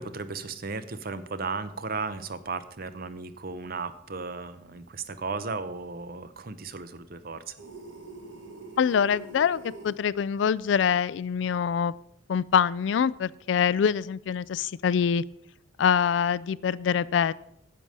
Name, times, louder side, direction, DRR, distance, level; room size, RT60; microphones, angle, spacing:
voice 1, 0.0-7.5, right 4 dB, 50° right, 0.7 m, -35 dB
sound 1, 7.6-10.0, right 3 dB, 80° right, 1.5 m, -44 dB
voice 2, 8.8-11.9 12.3-15.2 15.8-17.3, left 7 dB, 70° left, 0.3 m, -24 dB
10.0 x 7.6 x 5.4 m
head